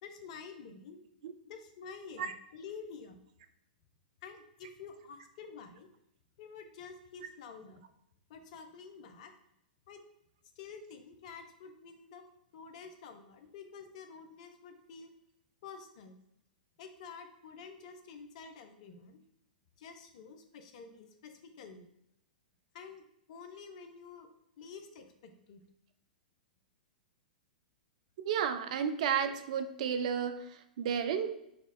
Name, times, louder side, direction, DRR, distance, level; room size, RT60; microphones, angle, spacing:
voice 1, 0.0-1.0 1.5-3.2 4.2-5.9 6.4-7.8 8.3-9.3 9.9-10.0 10.6-12.3 12.5-15.1 15.6-16.2 16.8-19.2 19.8-21.9 22.7-23.0 23.3-24.3 24.6-25.6 31.2-31.3, left 5 dB, 50° left, 6 dB, 0.6 m, -49 dB
voice 2, 28.2-31.3, right 8 dB, 55° right, 9 dB, 0.5 m, -32 dB
4.4 x 2.3 x 4.0 m, 0.77 s
figure-of-eight pair, 105°, 5 cm